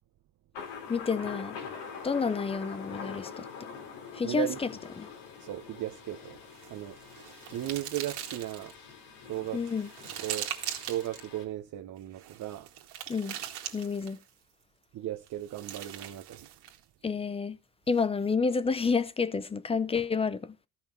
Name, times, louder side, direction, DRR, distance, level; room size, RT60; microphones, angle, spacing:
Thunder, 0.5-11.4, left 6 dB, 85° left, 2.9 m, -44 dB
voice 1, 0.9-1.6 2.0-3.7 4.1-5.1 9.5-9.9 13.1-13.4 13.7-14.2 17.0-17.6 17.9-20.6, left 5 dB, 15° left, 0.5 m, -30 dB
voice 2, 4.2-4.6 5.4-6.4 6.7-7.0 7.5-8.7 9.2-9.6 10.2-10.5 10.8-12.7 14.9-16.5, right 13 dB, 50° right, 0.9 m, -36 dB
sound 1, 6.5-8.8 9.3-11.3 12.1-14.3 15.3-16.8, right 11 dB, 75° right, 2.0 m, -41 dB
13.0 x 5.8 x 5.9 m
cardioid pair, 125°, 41 cm